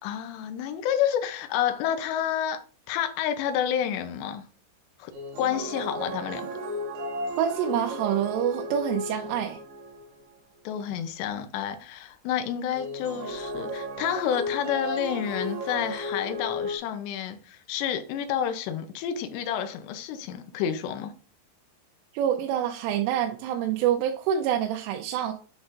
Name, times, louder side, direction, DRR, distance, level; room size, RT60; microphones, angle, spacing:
voice 1, 0.0-2.6 2.9-4.5 5.0-5.1 5.4-6.5 10.7-21.1, left 9 dB, 80° left, 2.5 m, -29 dB
sound 1, 5.1-10.2 12.7-16.8, left 1 dB, 65° right, 3.0 m, -34 dB
voice 2, 7.4-9.6 22.1-25.3, right 10 dB, 90° right, 3.2 m, -26 dB
8.1 x 6.0 x 2.5 m
omnidirectional pair, 5.6 m